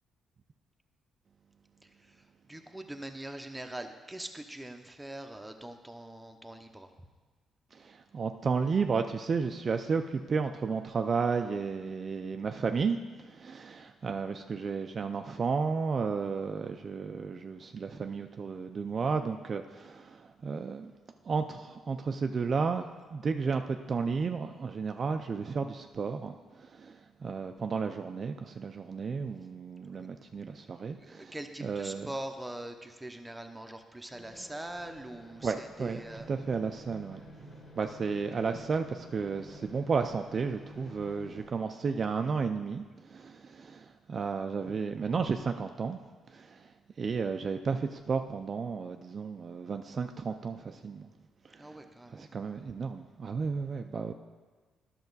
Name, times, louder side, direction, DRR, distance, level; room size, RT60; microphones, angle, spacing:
voice 1, 2.5-6.9 29.8-30.1 31.0-36.3 51.6-52.2, right 1 dB, 10° right, 5 dB, 0.7 m, -43 dB
voice 2, 7.7-20.9 21.2-31.4 31.6-32.1 35.4-36.0 36.3-37.2 37.8-46.0 46.3-46.7 47.0-51.1 51.5-51.8 52.1-54.1, right 5 dB, 45° right, 6 dB, 0.4 m, -33 dB
sound 1, 34.1-41.5, left 1 dB, 60° left, 2.4 m, -51 dB
10.5 x 6.0 x 4.0 m, 1.4 s
cardioid pair, 90°, 0 cm